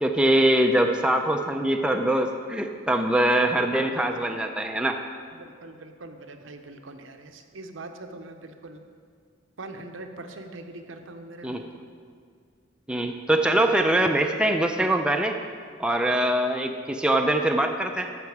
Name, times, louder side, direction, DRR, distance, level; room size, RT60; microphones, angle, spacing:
voice 1, 0.0-5.0 11.4-11.6 12.9-15.4 15.8-18.1, right 1 dB, 5° right, 3 dB, 0.4 m, -23 dB
voice 2, 5.3-8.8 9.6-11.7, right 2 dB, 85° right, 6 dB, 0.8 m, -42 dB
13.5 x 5.8 x 4.8 m, 2.1 s
head